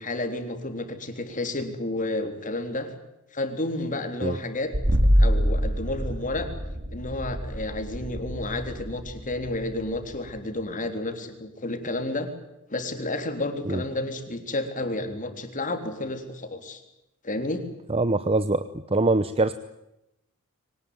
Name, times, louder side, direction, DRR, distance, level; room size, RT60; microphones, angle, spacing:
voice 1, 0.0-2.9 3.3-4.7 5.2-6.5 6.9-12.3 12.7-16.8 17.2-17.6, left 2 dB, 40° left, 6 dB, 3.7 m, -31 dB
sound 1, 4.7-10.3, equal, 50° right, 2.8 m, -25 dB
voice 2, 17.9-18.7 18.9-19.5, right 2 dB, 25° right, 12 dB, 0.9 m, -23 dB
23.5 x 19.5 x 9.6 m, 0.88 s
head